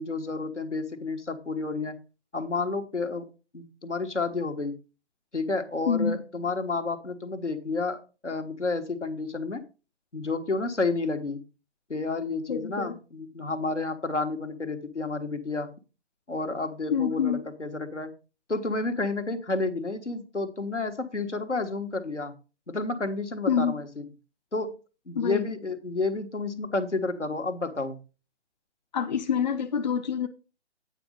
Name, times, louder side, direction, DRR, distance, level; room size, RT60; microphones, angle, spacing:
voice 1, 0.0-1.9 2.3-3.2 3.5-4.7 5.3-9.6 10.1-11.4 11.9-15.7 16.3-18.1 18.5-22.3 22.7-24.1 24.5-24.7 25.1-28.0, left 3 dB, 85° left, 1.4 m, -30 dB
voice 2, 5.9-6.2 12.5-12.9 16.9-17.4 23.5-23.8 25.1-25.5 28.9-30.3, left 7 dB, 40° left, 0.6 m, -26 dB
9.0 x 5.2 x 5.2 m
figure-of-eight pair, 135°, 35 cm